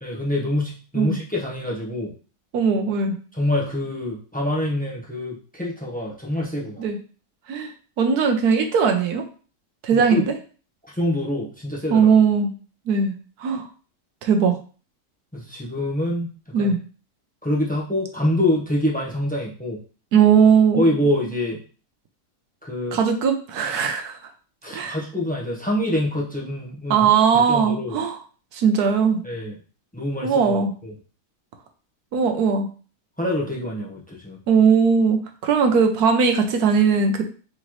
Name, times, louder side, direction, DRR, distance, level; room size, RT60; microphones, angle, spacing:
voice 1, 0.0-2.1 3.3-6.8 9.9-10.3 10.9-12.1 15.3-16.3 16.6-16.7 17.4-19.8 20.7-21.6 22.6-23.0 24.6-28.0 29.2-29.6 29.9-30.6 30.8-30.9 33.2-34.4, left 1 dB, 5° left, -3 dB, 0.7 m, -25 dB
voice 2, 2.5-3.1 6.8-7.0 7.5-7.7 8.0-9.2 9.8-10.3 11.9-12.5 12.9-13.1 13.4-13.7 14.2-14.6 16.5-16.8 20.1-20.9 22.9-24.2 24.7-25.0 26.9-28.2 28.5-29.2 30.2-30.7 32.1-32.7 34.5-37.2, right 6 dB, 70° right, 5 dB, 1.1 m, -19 dB
4.0 x 3.8 x 3.1 m, 0.38 s
omnidirectional pair, 1.8 m